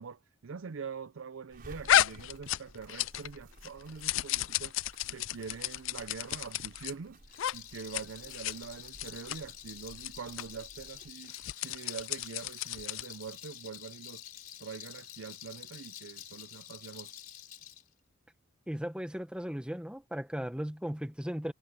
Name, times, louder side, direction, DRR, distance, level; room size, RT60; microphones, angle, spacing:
voice 1, 0.0-14.2 14.6-17.1, right 5 dB, 90° right, 0.6 m, -44 dB
sound 1, 1.5-11.1, right 1 dB, 50° right, 4.9 m, -55 dB
sound 2, 1.9-3.4 3.6-6.9 7.3-7.5 7.8-8.0 8.3-8.5 8.9-9.4 9.9-10.1 10.4-10.5 11.2-13.1, left 12 dB, 75° left, 0.4 m, -31 dB
Rattle, 7.2-17.8, left 10 dB, 50° left, 3.6 m, -48 dB
voice 2, 18.7-21.5, equal, 5° right, 1.3 m, -36 dB
head